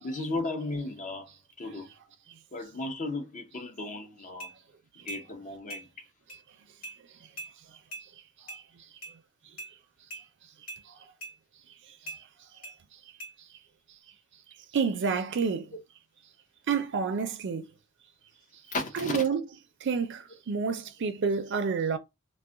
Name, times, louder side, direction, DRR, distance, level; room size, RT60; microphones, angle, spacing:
voice 1, 0.0-1.3 1.6-1.9 2.5-4.5 5.0-6.1 18.7-19.3, left 2 dB, 35° left, 0.6 m, -35 dB
sound 1, 4.4-4.5 5.1-5.2 5.7-5.8 6.3-6.4 6.8-7.0 7.4-7.5 7.9-8.1 8.5-8.6 9.0-9.1 9.6-9.7 10.1-10.2 10.7-10.8 11.2-11.3 12.1-12.2 12.6-12.8 13.2-13.3, right 1 dB, 75° left, 1.2 m, -41 dB
voice 2, 14.7-15.7 16.7-17.7 19.0-19.4 19.8-22.0, right 5 dB, 55° right, 0.4 m, -28 dB
2.3 x 2.1 x 3.7 m
head